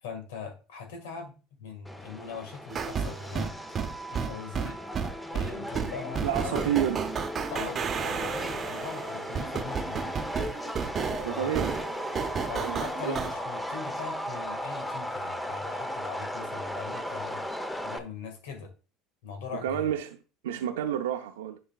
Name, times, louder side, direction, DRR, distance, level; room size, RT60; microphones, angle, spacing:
voice 1, 0.0-3.8 4.1-4.8 5.3-6.7 7.5-10.2 11.3-11.6 12.5-18.7 19.2-19.9, left 5 dB, 85° left, 1.9 m, -41 dB
Subway metro underground, 1.8-18.0, equal, 5° left, 0.9 m, -36 dB
sound 1, 2.7-13.3, right 6 dB, 40° right, 0.8 m, -32 dB
voice 2, 6.2-7.0 11.2-11.7 12.5-13.2 19.6-20.2 20.4-21.6, right 10 dB, 90° right, 0.5 m, -30 dB
10.0 x 5.6 x 2.4 m
hypercardioid pair, 85°, 0 cm